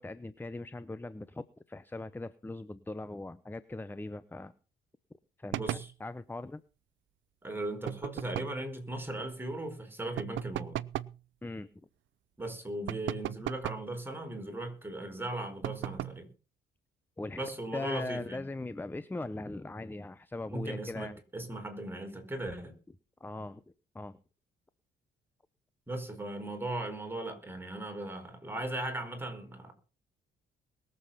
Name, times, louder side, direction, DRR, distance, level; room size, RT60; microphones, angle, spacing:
voice 1, 0.0-4.5 5.4-5.6 6.0-6.6 11.4-11.7 17.2-21.2 23.2-23.6 23.9-24.2, left 2 dB, 10° left, 0.8 m, -40 dB
voice 2, 5.5-5.9 7.4-10.8 12.4-16.3 17.3-18.4 20.5-22.7 25.9-29.7, right 1 dB, 10° right, 4.7 m, -38 dB
sound 1, 5.5-5.9 7.9-8.6 10.2-11.2 12.9-13.9 15.6-16.3, right 14 dB, 75° right, 0.6 m, -37 dB
21.5 x 7.8 x 5.7 m
cardioid pair, 90°, 20 cm